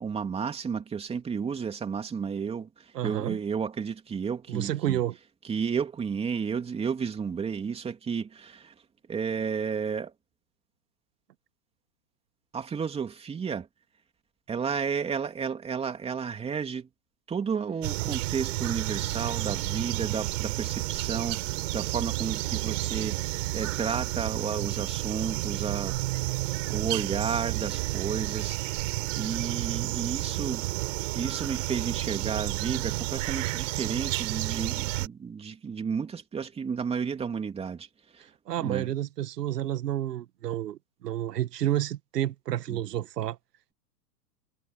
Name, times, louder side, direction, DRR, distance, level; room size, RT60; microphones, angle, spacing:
voice 1, 0.0-5.0 5.4-8.7 9.1-10.1 12.5-13.7 14.5-16.9 17.3-25.9 26.7-28.9 29.2-30.7 31.1-37.9 38.1-38.2 38.6-38.9 42.7-42.8, right 6 dB, 10° right, 3.0 m, -32 dB
voice 2, 2.9-3.4 4.5-5.2 38.5-43.4, right 12 dB, 75° right, 1.5 m, -30 dB
sound 1, 17.8-35.1, right 19 dB, 50° right, 5.3 m, -31 dB
hypercardioid pair, 145°, 49 cm